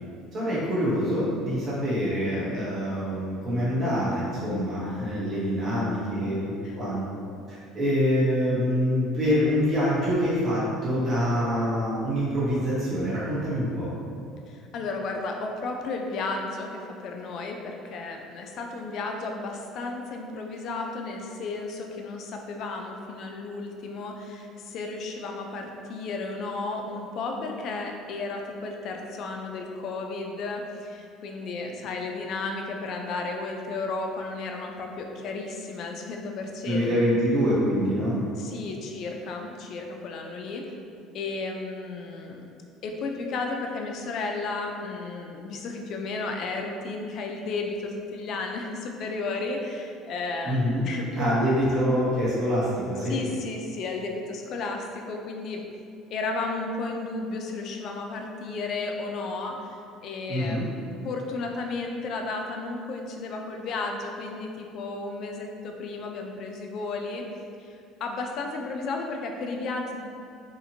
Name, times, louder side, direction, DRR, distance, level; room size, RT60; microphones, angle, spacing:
voice 1, 0.3-7.0 7.5-13.9 36.6-38.2 50.4-53.1 60.3-60.7, equal, 35° right, -9 dB, 1.0 m, -25 dB
voice 2, 14.5-37.0 38.4-40.6 41.1-42.5 42.8-51.3 53.0-55.6 56.1-60.6 61.0-67.3 67.6-70.0, left 3 dB, 50° left, 2 dB, 0.3 m, -33 dB
2.8 x 2.4 x 2.6 m, 2.4 s
cardioid pair, 135°, 0 cm